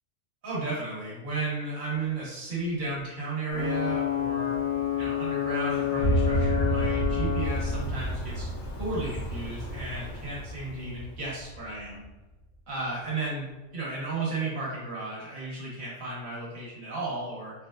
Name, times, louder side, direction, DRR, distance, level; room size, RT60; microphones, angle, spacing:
voice 1, 0.4-4.5 5.0-8.5 8.8-12.0 12.7-17.5, right 2 dB, 85° right, -7 dB, 1.5 m, -34 dB
Ocean / Boat Water vehicle / Alarm, 3.5-11.1, left 10 dB, 80° left, 1.0 m, -31 dB
sound 1, 6.0-12.1, right 1 dB, 60° right, 0.9 m, -30 dB
3.9 x 2.2 x 2.2 m, 1.1 s
omnidirectional pair, 1.3 m